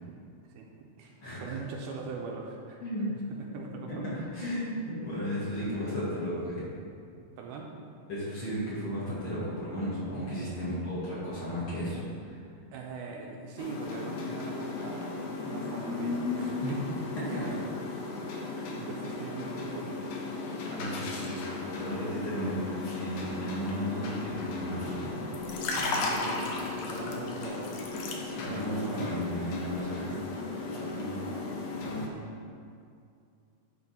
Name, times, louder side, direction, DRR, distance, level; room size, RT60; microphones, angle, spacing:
voice 1, 0.5-2.8 3.1-4.1 7.4-7.7 10.4-10.6 12.7-16.8 17.2-17.6 18.2-20.2 20.7-20.9 25.8-27.7 28.5-29.1 29.7-30.5 30.7-31.0 31.3-31.4, right 4 dB, 80° right, 0 dB, 2.1 m, -42 dB
voice 2, 1.2-1.6 2.8-3.1 3.9-6.6 8.1-12.4 16.6-16.7 17.3-17.4 20.6-21.4 21.7-25.1 28.2-30.2 30.9-31.2 31.8-32.0, equal, 45° left, -10 dB, 2.3 m, -34 dB
sound 1, 13.6-32.1, left 3 dB, 85° left, 1.4 m, -35 dB
10.5 x 3.8 x 4.3 m, 2.4 s
omnidirectional pair, 3.9 m